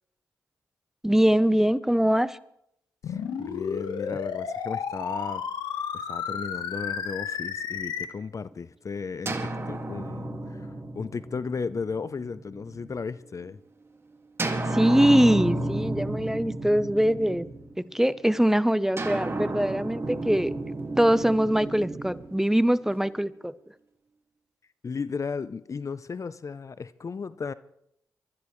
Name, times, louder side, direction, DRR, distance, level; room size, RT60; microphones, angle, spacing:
voice 1, 1.0-2.4 14.7-17.5 17.8-20.5 21.0-23.5, equal, 5° right, 0.7 m, -22 dB
sound 1, 3.0-8.0, left 7 dB, 85° left, 1.2 m, -32 dB
voice 2, 3.1-5.4 5.9-13.6 24.8-27.5, left 5 dB, 45° left, 0.6 m, -35 dB
sound 2, 9.2-13.0 14.4-17.9 19.0-23.1, right 2 dB, 35° right, 2.0 m, -32 dB
24.5 x 13.0 x 3.2 m
supercardioid pair, 45°, 7 cm